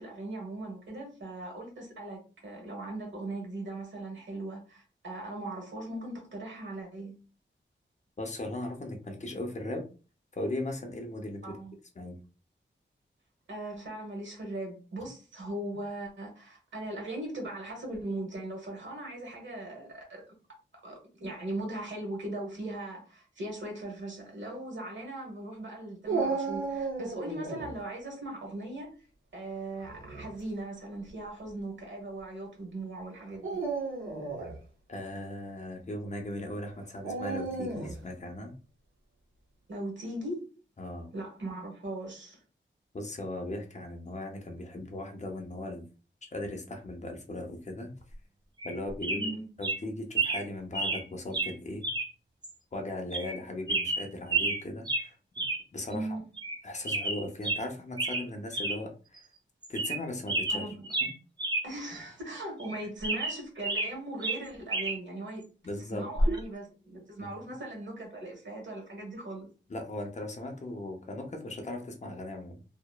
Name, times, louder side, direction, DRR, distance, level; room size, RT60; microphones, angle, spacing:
voice 1, 0.0-7.2 11.4-11.8 13.5-20.2 20.8-28.9 29.3-33.6 39.7-40.5 41.1-42.4 49.1-49.5 55.9-56.2 60.5-60.9 61.6-65.4 65.7-69.5, right 1 dB, 70° right, 1.2 m, -39 dB
voice 2, 8.2-9.9 10.3-11.4 12.0-12.2 34.9-38.5 40.8-41.1 42.9-45.8 46.2-47.9 48.6-49.3 49.6-51.9 52.7-55.2 55.7-56.2 56.6-59.2 59.7-60.7 61.0-61.1 65.6-66.1 67.2-67.5 69.7-72.6, left 1 dB, 35° left, 0.6 m, -38 dB
Dog, 26.1-27.7 29.8-30.3 31.1-31.2 33.3-34.6 37.0-38.0, right 4 dB, 90° right, 0.7 m, -33 dB
sound 1, 48.6-48.8 49.0-49.3 49.6-49.8 50.1-50.4 50.7-51.0 51.3-51.5 51.8-52.1 52.4-52.5 53.1-53.4 53.7-54.6 54.8-55.1 55.4-55.6 55.9-56.0 56.4-56.6 56.8-57.6 58.0-58.2 58.5-58.8 59.2-59.3 59.6-60.0 60.3-61.6 61.9-62.0 62.6-63.9 64.2-65.0 66.2-66.4, right 2 dB, 20° right, 0.4 m, -30 dB
2.9 x 2.0 x 2.2 m
wide cardioid pair, 115°, 20 cm